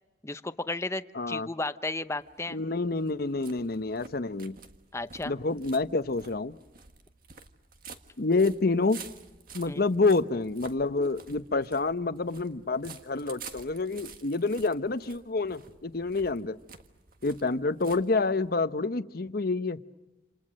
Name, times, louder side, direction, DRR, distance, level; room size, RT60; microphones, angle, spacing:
voice 1, 0.2-2.6 4.9-5.3 9.7-9.8, left 2 dB, 15° left, 11 dB, 0.8 m, -34 dB
voice 2, 1.1-1.5 2.5-4.6 5.2-6.6 8.2-9.0 9.5-16.6 17.2-19.8, left 3 dB, 60° left, 12 dB, 0.9 m, -28 dB
sound 1, 2.1-18.6, right 5 dB, 55° right, 1.7 m, -50 dB
28.5 x 28.0 x 6.4 m, 1.1 s
head